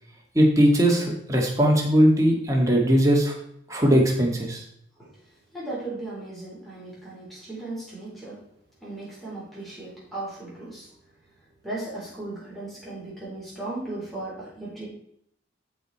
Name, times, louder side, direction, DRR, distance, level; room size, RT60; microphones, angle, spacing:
voice 1, 0.3-3.3 3.7-4.6, equal, 15° right, -1 dB, 2.1 m, -20 dB
voice 2, 5.5-8.4 8.8-10.9 11.6-14.9, right 2 dB, ahead, -7 dB, 4.0 m, -36 dB
13.5 x 4.9 x 4.3 m, 0.72 s
head